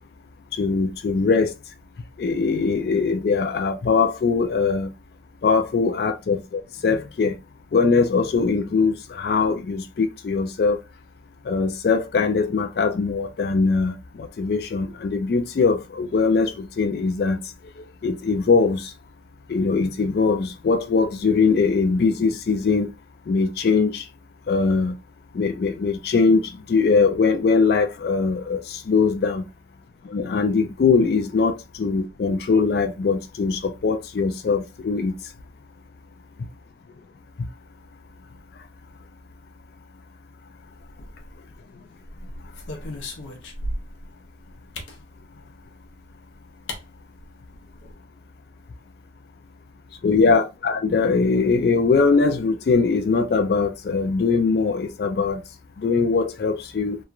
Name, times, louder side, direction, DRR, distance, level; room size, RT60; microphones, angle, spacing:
voice 1, 0.5-1.5 2.2-4.9 5.4-7.4 7.7-10.8 11.5-17.4 17.8-18.9 19.5-22.9 23.3-24.0 24.5-25.0 25.3-29.5 30.1-35.1 50.0-55.4 55.8-57.0, left 4 dB, 55° left, 0.3 m, -21 dB
sound 1, 40.8-41.5 42.1-44.1 44.7-45.0 46.1-46.2 46.7-46.8 47.2-47.3 47.5-47.9, left 1 dB, 85° left, 0.7 m, -35 dB
2.9 x 2.3 x 2.4 m
head